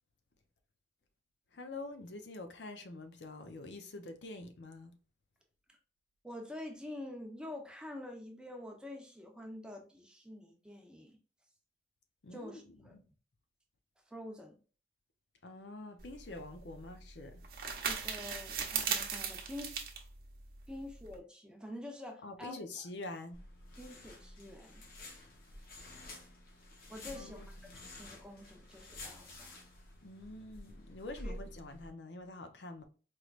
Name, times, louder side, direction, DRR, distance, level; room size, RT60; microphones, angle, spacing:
voice 1, 1.5-5.0 12.2-12.6 12.9-13.0 15.4-17.4 22.2-23.4 27.1-27.8 30.0-32.8, left 2 dB, 80° left, 0.6 m, -46 dB
voice 2, 6.2-11.2 12.3-12.9 14.1-14.6 17.8-19.8 20.7-22.6 23.8-24.8 26.9-27.7 28.0-29.6 31.2-31.3, left 1 dB, 5° right, 0.7 m, -47 dB
sound 1, 16.0-21.2, right 7 dB, 55° right, 0.8 m, -39 dB
sound 2, 23.3-31.9, left 1 dB, 55° left, 1.0 m, -50 dB
4.6 x 3.1 x 2.4 m
head